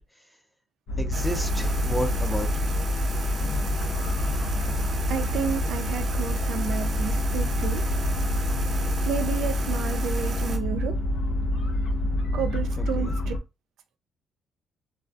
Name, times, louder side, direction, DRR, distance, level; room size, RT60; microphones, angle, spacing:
sound 1, 0.9-13.4, left 1 dB, 80° left, 0.6 m, -27 dB
voice 1, 1.0-2.7 12.8-13.1, equal, 5° left, 0.5 m, -32 dB
sound 2, 1.1-10.6, right 3 dB, 45° right, 0.6 m, -35 dB
voice 2, 5.1-7.9 9.1-11.0 12.3-13.3, right 7 dB, 80° right, 0.3 m, -31 dB
2.3 x 2.3 x 2.4 m
cardioid pair, 90°, 0 cm